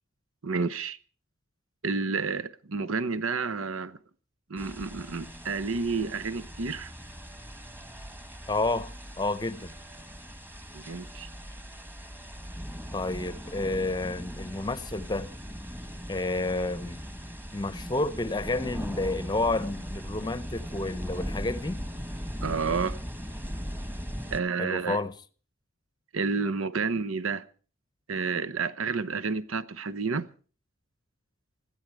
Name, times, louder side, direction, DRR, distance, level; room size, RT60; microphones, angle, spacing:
voice 1, 0.4-1.0 1.8-4.0 4.5-6.9 10.7-11.3 22.4-23.0 24.3-25.0 26.1-27.4 28.1-30.3, right 4 dB, 85° right, 0.9 m, -30 dB
sound 1, 4.6-24.4, equal, 10° right, 1.4 m, -39 dB
voice 2, 8.5-9.7 12.9-15.3 16.1-17.0 17.5-21.8 24.6-25.1, left 2 dB, 20° left, 0.7 m, -30 dB
20.5 x 14.5 x 4.7 m
head